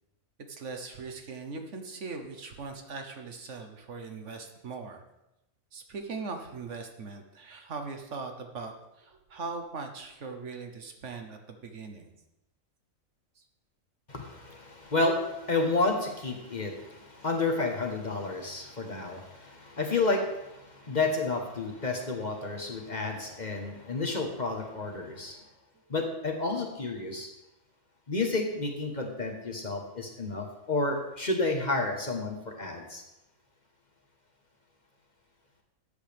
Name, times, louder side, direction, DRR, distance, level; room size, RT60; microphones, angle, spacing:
voice 1, 0.5-5.0 5.7-12.1, right 4 dB, 60° right, 5 dB, 1.3 m, -40 dB
voice 2, 14.1-25.4 25.9-27.3 28.1-33.0, left 3 dB, 35° left, 2 dB, 1.3 m, -31 dB
13.5 x 8.5 x 3.5 m, 0.91 s
omnidirectional pair, 1.4 m